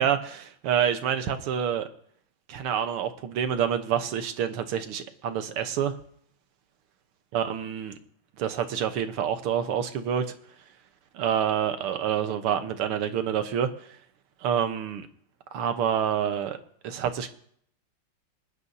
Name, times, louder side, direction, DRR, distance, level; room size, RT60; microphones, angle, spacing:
voice 1, 0.0-1.9 2.5-6.0 7.3-8.0 8.4-10.3 11.1-13.7 14.4-15.1 15.5-16.6 16.8-17.3, right 9 dB, 85° right, 8 dB, 1.9 m, -27 dB
26.5 x 9.7 x 2.7 m, 0.65 s
omnidirectional pair, 2.4 m